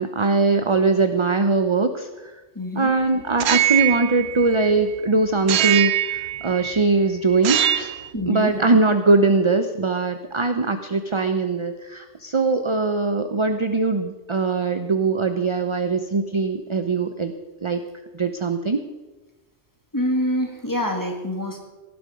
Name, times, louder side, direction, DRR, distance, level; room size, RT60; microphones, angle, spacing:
voice 1, 0.0-2.1 2.8-7.9 8.3-17.3 17.6-17.8 18.1-18.8, right 3 dB, 30° right, 8 dB, 0.6 m, -21 dB
voice 2, 2.5-3.0 8.1-8.5 19.9-21.7, left 1 dB, 15° left, 2 dB, 2.2 m, -26 dB
sound 1, 3.3-4.9 5.5-6.8 7.3-8.1, right 12 dB, 65° right, 0.8 m, -23 dB
17.5 x 11.5 x 5.2 m, 1.2 s
omnidirectional pair, 1.2 m